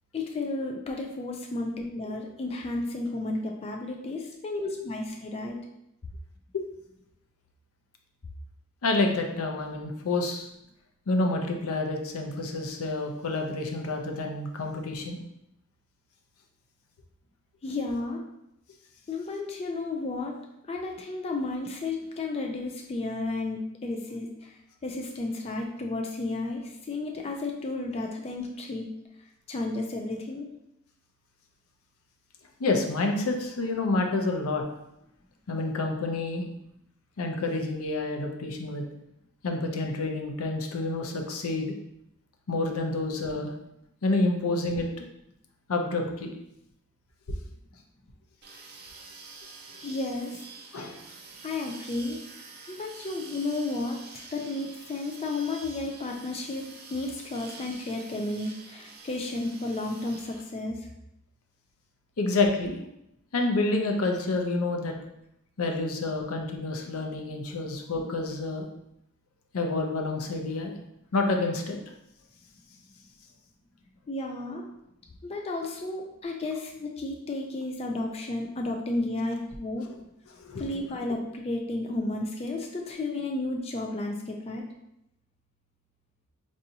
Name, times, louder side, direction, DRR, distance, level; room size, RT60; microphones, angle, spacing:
voice 1, 0.1-5.6 17.6-18.2 19.1-20.4 20.7-28.9 29.5-30.5 49.8-50.4 51.4-52.2 52.7-56.6 56.9-60.9 74.1-74.7 75.2-79.9 80.6-84.7, left 2 dB, 30° left, 1 dB, 0.3 m, -32 dB
voice 2, 8.8-10.5 11.1-15.2 32.6-34.6 35.5-36.5 37.2-38.8 39.4-41.7 42.5-43.5 44.0-45.1 45.7-46.3 50.7-51.0 62.2-62.8 63.3-64.9 65.6-68.6 69.5-70.8 71.1-71.8 80.3-80.7, left 2 dB, 80° left, 3 dB, 0.6 m, -28 dB
sound 1, 48.4-60.4, right 4 dB, 45° right, 0.5 m, -47 dB
4.7 x 2.6 x 2.7 m, 0.83 s
head